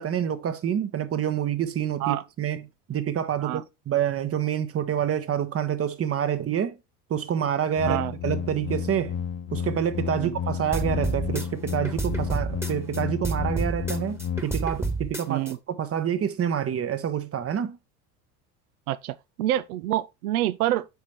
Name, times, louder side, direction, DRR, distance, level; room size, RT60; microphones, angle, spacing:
voice 1, 0.0-6.8 7.1-9.1 9.5-17.8, right 9 dB, 30° right, 1.0 m, -27 dB
sound 1, 7.8-14.4, left 8 dB, 45° left, 1.1 m, -31 dB
sound 2, 10.7-13.0 13.2-15.5, right 3 dB, 5° right, 1.3 m, -29 dB
voice 2, 15.3-15.6 18.9-20.9, right 14 dB, 75° right, 0.6 m, -27 dB
9.3 x 4.3 x 3.1 m
hypercardioid pair, 70°, 45 cm